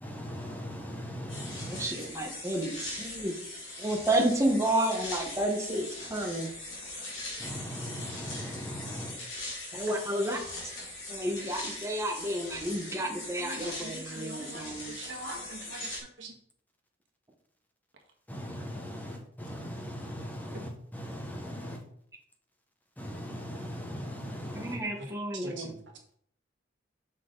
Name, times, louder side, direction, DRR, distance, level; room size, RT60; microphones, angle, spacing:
voice 1, 0.0-1.9 7.4-9.1 18.3-21.8 23.0-24.8, equal, 10° left, 1.2 m, -39 dB
sound 1, 1.3-16.0, left 2 dB, 80° left, 2.6 m, -41 dB
voice 2, 1.6-3.3 3.8-6.5 9.7-10.4 11.1-14.9 24.5-25.8, right 1 dB, 15° right, 1.2 m, -31 dB
voice 3, 13.4-15.9 16.2-16.3 25.0-25.7, right 2 dB, 75° right, 1.7 m, -43 dB
7.3 x 6.0 x 3.9 m
head